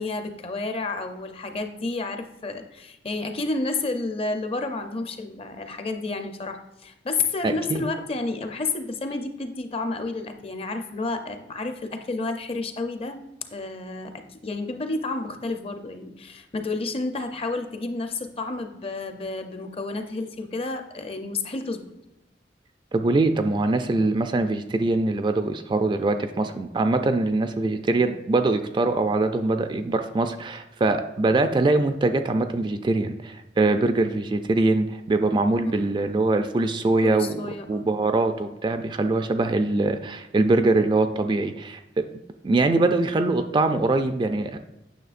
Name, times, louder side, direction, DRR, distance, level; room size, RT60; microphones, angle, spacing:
voice 1, 0.0-13.2 13.5-21.8 35.6-35.9 37.0-37.9, left 3 dB, 30° left, 7 dB, 0.5 m, -30 dB
voice 2, 7.4-7.8 22.9-37.4 37.7-42.0 42.4-44.6, right 2 dB, 25° right, 8 dB, 0.3 m, -23 dB
9.3 x 6.2 x 2.5 m, 0.96 s
head